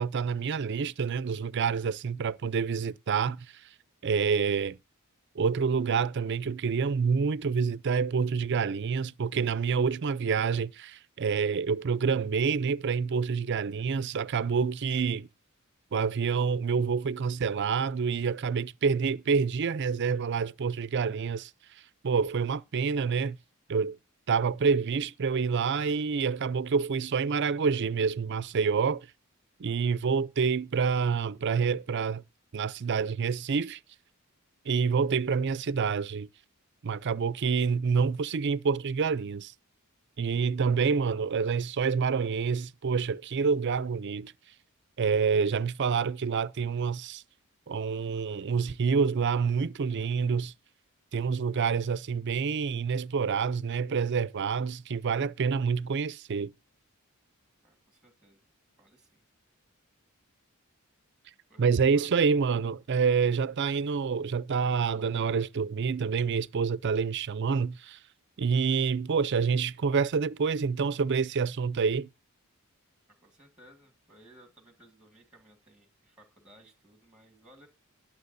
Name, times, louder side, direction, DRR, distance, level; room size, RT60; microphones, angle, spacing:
voice 1, 0.0-3.5 4.0-4.8 5.4-15.3 15.9-21.5 22.0-23.4 23.7-24.0 24.3-29.1 29.6-32.2 32.5-33.8 34.7-36.3 36.8-39.5 40.2-44.3 45.0-47.2 47.7-50.5 51.1-56.5 61.6-68.0 68.4-72.1, right 5 dB, 50° right, 0.4 m, -27 dB
voice 2, 40.6-41.2 57.6-58.4 58.8-59.2 61.5-62.3 73.1-77.7, right 1 dB, 5° right, 1.7 m, -58 dB
21.0 x 7.3 x 2.6 m
head